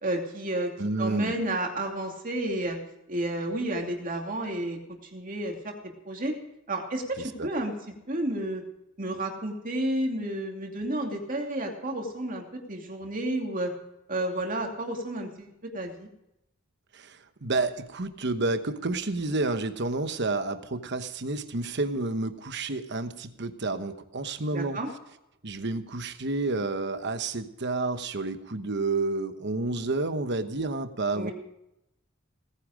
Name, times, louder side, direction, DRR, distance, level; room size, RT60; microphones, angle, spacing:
voice 1, 0.0-0.7 1.0-2.8 3.1-5.7 6.1-6.4 6.7-7.7 8.1-8.6 9.0-13.7 14.1-16.1 24.5-24.9 31.1-31.3, right 1 dB, 40° right, 2 dB, 2.6 m, -31 dB
voice 2, 0.8-1.3 7.2-7.5 16.9-24.8 25.4-31.3, right 3 dB, 55° right, 10 dB, 1.1 m, -30 dB
18.5 x 10.0 x 5.1 m, 0.87 s
head